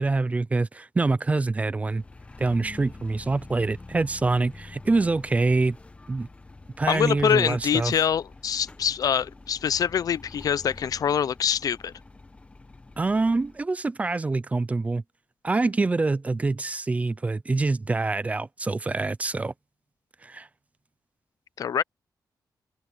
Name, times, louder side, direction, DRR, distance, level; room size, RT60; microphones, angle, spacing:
voice 1, 0.0-2.0 2.4-5.8 6.1-6.3 6.8-7.9 13.0-15.0 15.4-19.5 20.2-20.5, right 3 dB, 20° right, 0.4 m, -25 dB
sound 1, 1.8-13.6, left 3 dB, 15° left, 0.9 m, -46 dB
voice 2, 6.9-11.9 21.6-21.8, left 8 dB, 60° left, 0.5 m, -25 dB
open air
wide cardioid pair, 175°, 7 cm